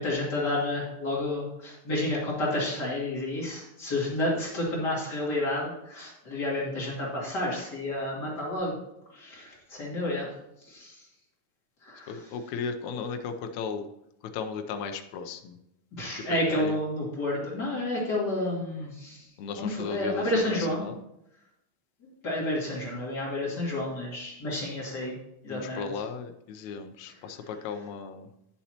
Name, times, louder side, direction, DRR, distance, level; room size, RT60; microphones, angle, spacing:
voice 1, 0.0-8.7 9.1-10.3 10.7-10.9 11.9-12.2 16.0-19.2 19.6-20.8 22.2-25.1 25.4-25.9, left 1 dB, 30° left, -5 dB, 2.6 m, -30 dB
voice 2, 12.1-13.9 14.3-15.6 16.3-16.8 19.4-21.0 25.5-28.3, left 5 dB, 80° left, 7 dB, 1.6 m, -35 dB
10.5 x 7.1 x 2.9 m, 0.84 s
omnidirectional pair, 4.1 m